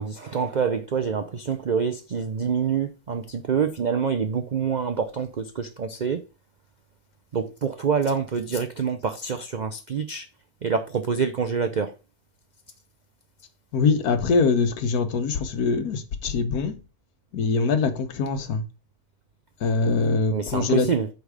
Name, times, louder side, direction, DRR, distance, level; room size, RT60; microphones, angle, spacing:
voice 1, 0.0-6.2 7.3-10.3 10.6-11.9 20.3-21.1, right 6 dB, 65° right, 0.4 m, -26 dB
voice 2, 13.7-16.8 17.3-18.6 19.6-20.9, left 4 dB, 80° left, 1.5 m, -23 dB
8.2 x 3.9 x 4.9 m
omnidirectional pair, 1.6 m